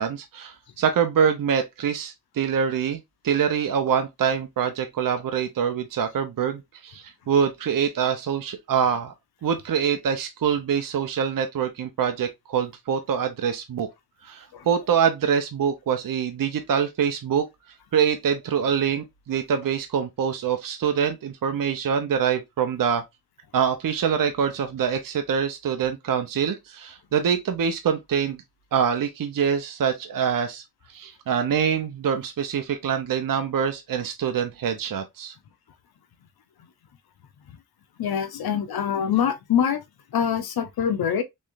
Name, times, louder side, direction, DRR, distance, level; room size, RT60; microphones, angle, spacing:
voice 1, 0.0-9.1 9.4-13.9 14.2-17.5 17.9-23.0 23.5-28.4 28.7-30.6 30.9-35.3, right 7 dB, 60° right, 0.8 m, -25 dB
voice 2, 38.0-39.8 40.1-41.2, left 8 dB, 75° left, 0.8 m, -24 dB
3.6 x 3.2 x 2.5 m
cardioid pair, 55°, 37 cm